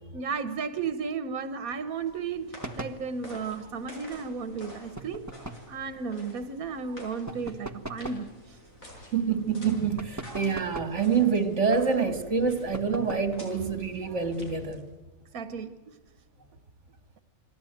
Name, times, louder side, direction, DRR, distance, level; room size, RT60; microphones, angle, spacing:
voice 1, 0.1-5.2 5.7-8.6 15.3-15.9, right 5 dB, 90° right, 11 dB, 1.6 m, -34 dB
sound 1, 1.7-15.0, left 1 dB, 75° left, 7.1 m, -48 dB
sound 2, 2.6-3.0 5.0-5.7 7.3-8.3 10.0-11.0 12.7-13.4, right 2 dB, 15° right, 1.3 m, -39 dB
voice 2, 9.1-14.8, right 5 dB, 55° right, 8 dB, 2.5 m, -26 dB
29.0 x 21.5 x 9.3 m, 1.1 s
omnidirectional pair, 1.4 m